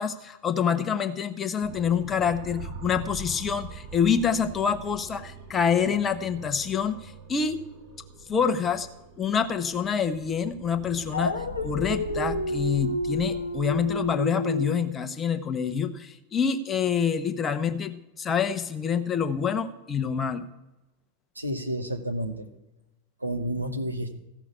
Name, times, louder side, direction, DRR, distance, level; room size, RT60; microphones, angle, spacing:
voice 1, 0.0-7.6 8.3-8.9 9.2-11.3 11.6-20.5, left 7 dB, 20° left, 8 dB, 0.9 m, -26 dB
sound 1, 1.6-14.1, right 3 dB, 45° right, 3.3 m, -43 dB
Dog, 11.1-14.8, left 2 dB, 80° left, 0.9 m, -30 dB
voice 2, 21.3-22.5 23.2-24.2, right 1 dB, 85° right, 5 dB, 1.2 m, -30 dB
15.0 x 6.1 x 8.2 m, 0.98 s
figure-of-eight pair, 90°, 0 cm